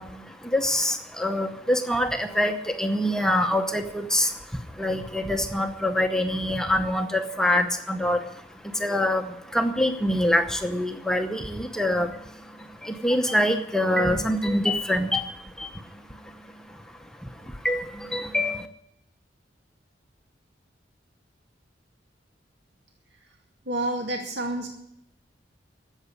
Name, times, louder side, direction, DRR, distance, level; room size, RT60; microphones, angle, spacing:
voice 1, 0.0-18.7, left 1 dB, 5° left, 5 dB, 0.8 m, -26 dB
voice 2, 23.7-24.7, right 1 dB, 70° right, 1 dB, 2.3 m, -28 dB
13.5 x 8.0 x 9.8 m, 0.77 s
head